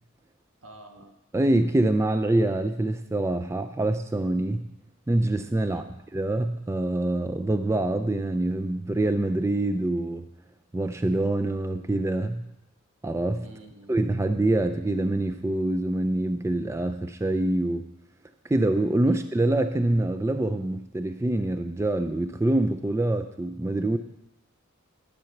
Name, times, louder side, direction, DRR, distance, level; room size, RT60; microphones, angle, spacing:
voice 1, 0.6-1.2 5.6-6.0 13.4-14.0 19.0-19.2, right 2 dB, 75° right, 4 dB, 1.5 m, -48 dB
voice 2, 1.3-4.7 5.1-5.8 6.1-10.2 10.7-12.5 13.0-13.4 13.9-17.9 18.5-24.0, right 1 dB, 15° right, 9 dB, 0.3 m, -25 dB
11.0 x 8.2 x 5.8 m, 0.88 s
head